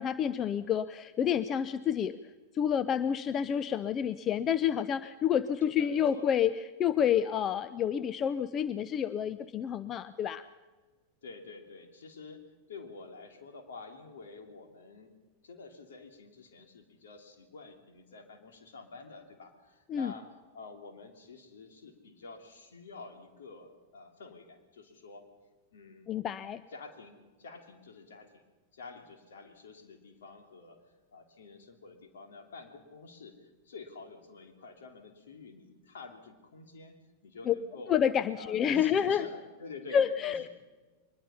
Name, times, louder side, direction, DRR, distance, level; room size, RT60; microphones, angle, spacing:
voice 1, 0.0-10.5 19.9-20.1 26.1-26.6 37.5-37.6 37.9-39.3 39.9-40.5, left 8 dB, 30° left, 14 dB, 0.6 m, -29 dB
voice 2, 5.6-6.3 11.2-15.1 15.4-20.3 20.5-25.3 25.7-26.4 26.7-28.4 28.7-30.8 31.1-37.0 37.2-38.0 38.4-40.1, left 4 dB, 65° left, 5 dB, 2.9 m, -49 dB
23.5 x 21.0 x 5.7 m, 1.3 s
figure-of-eight pair, 90°, 0 cm